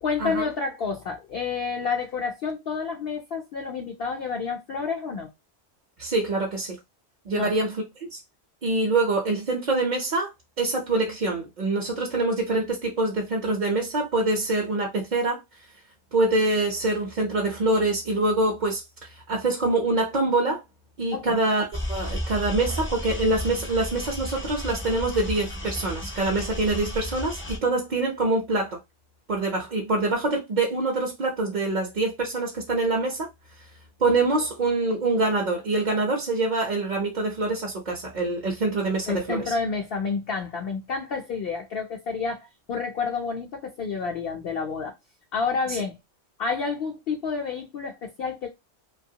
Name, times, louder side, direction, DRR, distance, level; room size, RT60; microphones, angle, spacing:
voice 1, 0.0-5.3 7.3-7.5 21.1-21.4 39.1-44.9 45.3-46.0 46.4-48.5, left 5 dB, 65° left, 0.7 m, -29 dB
voice 2, 6.0-6.8 7.3-7.8 8.1-8.2 8.6-10.3 10.6-15.4 16.1-20.6 21.0-28.8 29.3-33.3 34.0-39.5 45.7-45.8, right 2 dB, 45° right, 0.7 m, -25 dB
sound 1, 21.7-27.6, left 1 dB, 20° left, 0.3 m, -33 dB
2.8 x 2.3 x 2.7 m
omnidirectional pair, 1.2 m